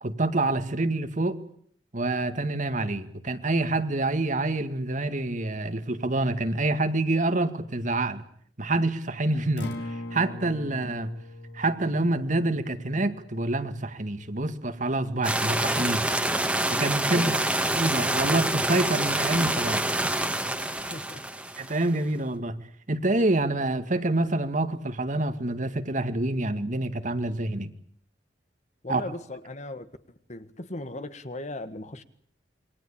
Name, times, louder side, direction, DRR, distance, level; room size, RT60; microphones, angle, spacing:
voice 1, 0.0-1.4 1.9-8.2 8.6-9.7 10.1-11.1 11.5-16.2 16.7-17.3 17.8-20.2 21.6-22.6 22.9-27.7 28.9-29.0, right 2 dB, 45° right, 2.0 m, -27 dB
Acoustic guitar, 9.5-17.6, left 1 dB, 80° left, 4.2 m, -43 dB
sound 1, 15.2-21.8, right 1 dB, 5° right, 2.0 m, -27 dB
voice 2, 20.9-21.2 28.8-29.9 30.3-32.0, left 2 dB, 45° left, 1.6 m, -37 dB
27.5 x 22.5 x 8.7 m
head